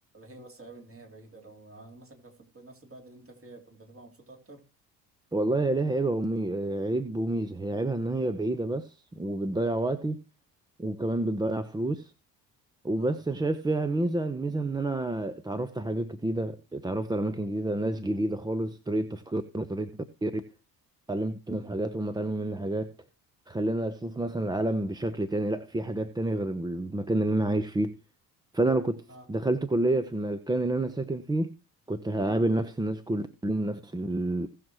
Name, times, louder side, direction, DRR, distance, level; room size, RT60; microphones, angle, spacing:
voice 1, 0.1-4.6 13.0-13.2 21.5-21.7 29.1-29.3, right 2 dB, 25° right, 3.2 m, -50 dB
voice 2, 5.3-10.2 10.8-12.1 12.8-19.9 20.2-20.4 21.1-22.9 23.5-28.0 28.5-29.0 29.3-31.5 31.9-34.5, right 2 dB, 10° right, 0.7 m, -29 dB
18.5 x 6.5 x 3.0 m
figure-of-eight pair, 55°, 48 cm